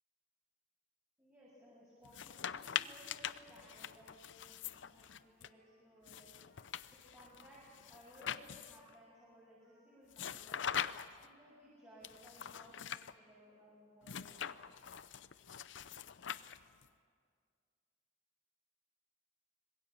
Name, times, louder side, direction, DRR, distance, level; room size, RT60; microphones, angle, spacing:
voice 1, 1.2-6.3 7.1-10.7 11.2-14.3, equal, 15° right, -8 dB, 6.8 m, -60 dB
sound 1, 2.0-5.5 6.1-8.9 10.1-11.3 12.0-13.1 14.0-16.9, left 8 dB, 75° left, 0.6 m, -43 dB
Trumpet, 4.5-12.7, right 1 dB, 40° right, 7.3 m, -74 dB
25.5 x 22.0 x 7.3 m, 2.1 s
head